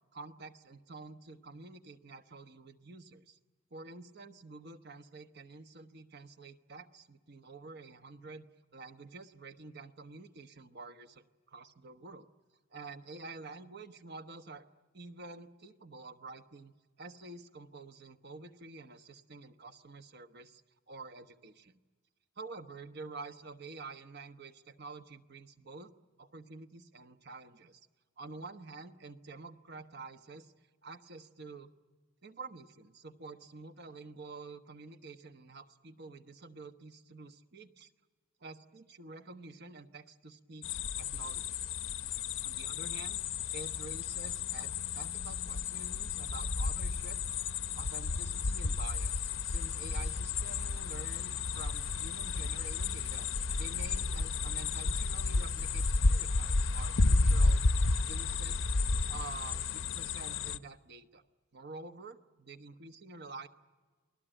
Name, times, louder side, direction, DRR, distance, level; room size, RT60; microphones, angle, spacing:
voice 1, 0.1-3.4 3.7-8.5 8.7-12.3 12.7-14.6 14.9-20.6 20.9-21.8 22.4-25.9 26.2-27.8 28.2-30.5 30.8-31.7 32.2-37.9 38.4-41.6 42.4-43.2 43.5-47.2 47.7-53.3 53.5-57.6 58.0-58.7 59.1-61.2 61.5-63.5, right 3 dB, 50° right, 9 dB, 1.1 m, -48 dB
sound 1, 40.6-60.6, left 3 dB, 65° left, 0.8 m, -32 dB
28.5 x 20.0 x 9.0 m, 1.4 s
head